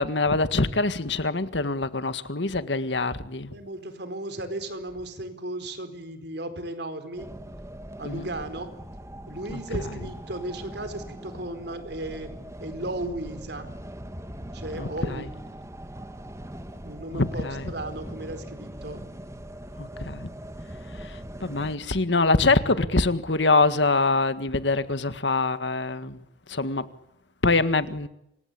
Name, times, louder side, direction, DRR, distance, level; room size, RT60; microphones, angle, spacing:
voice 1, 0.0-3.5 8.0-8.3 14.8-15.2 17.1-17.7 19.8-20.3 21.0-26.2 26.5-26.9 27.4-28.1, left 3 dB, 75° left, 1.8 m, -24 dB
voice 2, 3.5-7.3 8.0-8.7 9.3-13.7 14.5-15.3 16.8-19.1, right 1 dB, 65° right, 4.5 m, -35 dB
sound 1, 7.2-21.8, right 1 dB, 15° right, 1.9 m, -41 dB
27.5 x 25.0 x 8.6 m
head